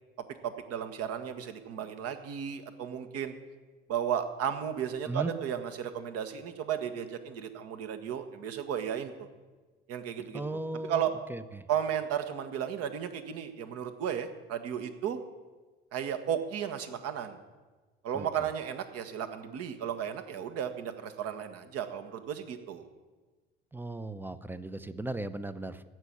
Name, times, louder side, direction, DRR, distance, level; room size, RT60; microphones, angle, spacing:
voice 1, 0.4-3.3 3.9-9.3 9.9-10.6 10.9-11.1 11.7-15.2 15.9-17.4 18.0-22.9, right 9 dB, 50° right, 9 dB, 1.4 m, -34 dB
voice 2, 10.3-11.7 18.1-18.3 23.7-25.8, right 2 dB, 5° right, 13 dB, 0.7 m, -37 dB
15.5 x 6.2 x 8.5 m, 1.3 s
figure-of-eight pair, 65°, 30 cm